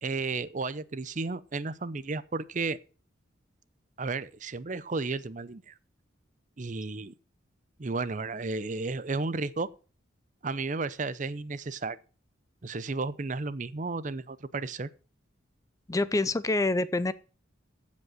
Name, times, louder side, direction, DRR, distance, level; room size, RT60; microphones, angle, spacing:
voice 1, 0.0-2.8 4.0-5.7 6.6-7.1 7.8-9.7 10.4-12.0 12.6-14.9, right 3 dB, 40° right, 0.6 m, -33 dB
voice 2, 15.9-17.1, left 2 dB, 15° left, 0.4 m, -26 dB
15.0 x 5.3 x 6.2 m
head